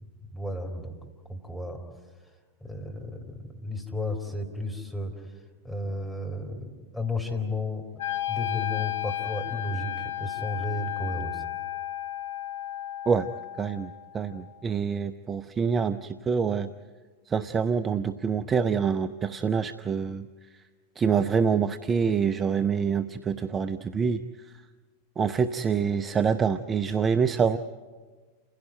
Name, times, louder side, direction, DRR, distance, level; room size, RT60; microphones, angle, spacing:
voice 1, 0.3-0.9 1.3-1.8 2.6-5.3 5.6-7.8 8.3-11.5, left 2 dB, 5° left, 1 dB, 4.0 m, -33 dB
Wind instrument woodwind instrument, 8.0-14.1, left 12 dB, 60° left, 0.8 m, -33 dB
voice 2, 13.6-16.7 17.3-20.3 21.0-24.6 25.2-27.6, right 6 dB, 20° right, 11 dB, 0.6 m, -26 dB
29.0 x 16.5 x 9.3 m, 1.4 s
figure-of-eight pair, 90°, 0 cm